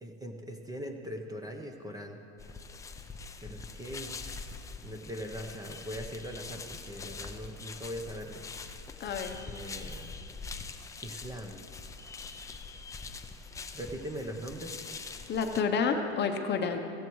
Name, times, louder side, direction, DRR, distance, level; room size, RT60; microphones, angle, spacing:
voice 1, 0.0-2.2 3.4-4.1 4.8-8.4 9.5-10.2 11.0-11.6 13.7-14.8, equal, 10° right, 4 dB, 0.7 m, -41 dB
sound 1, 2.4-15.6, left 4 dB, 10° left, 0.3 m, -44 dB
voice 2, 9.0-9.4 15.3-16.8, left 5 dB, 30° left, 5 dB, 0.8 m, -29 dB
15.5 x 15.0 x 3.1 m, 2.7 s
supercardioid pair, 135°, 34 cm